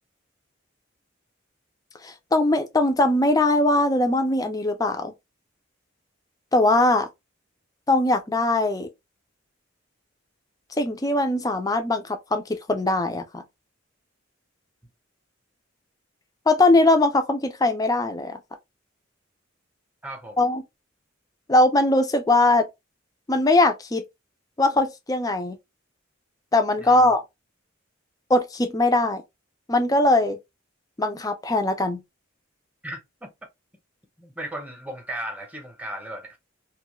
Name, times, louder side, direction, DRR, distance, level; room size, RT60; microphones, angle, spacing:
voice 1, 2.0-5.1 6.5-7.1 7.9-8.9 10.8-13.4 16.5-18.4 20.4-20.6 21.5-22.7 23.3-24.0 24.6-25.6 26.5-27.2 28.3-29.2 29.7-30.4 31.0-32.0, left 2 dB, 20° left, 0.4 m, -21 dB
voice 2, 20.0-20.4 26.8-27.1 32.8-33.3 34.2-36.4, right 1 dB, 10° right, 0.8 m, -36 dB
2.6 x 2.3 x 2.9 m
head